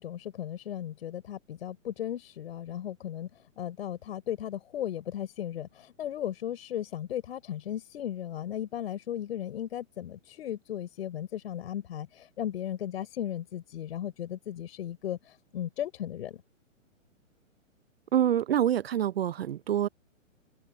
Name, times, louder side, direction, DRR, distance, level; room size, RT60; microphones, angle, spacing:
voice 1, 0.0-3.3 3.6-16.4, left 11 dB, 50° left, 5.4 m, -36 dB
voice 2, 18.1-19.9, right 10 dB, 50° right, 0.6 m, -26 dB
open air
figure-of-eight pair, 120°, 40 cm